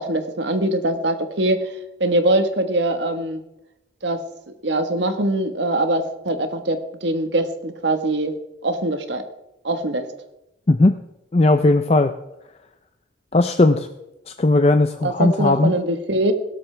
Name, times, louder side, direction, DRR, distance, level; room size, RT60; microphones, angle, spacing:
voice 1, 0.0-1.7 2.0-3.4 4.0-4.2 4.6-8.3 8.6-9.2 9.6-10.1 15.0-16.3, right 1 dB, 75° right, 8 dB, 1.4 m, -22 dB
voice 2, 10.7-11.0 11.3-12.1 13.3-13.9 14.3-15.7, left 2 dB, 35° left, 8 dB, 0.5 m, -17 dB
17.0 x 13.0 x 3.4 m, 0.89 s
head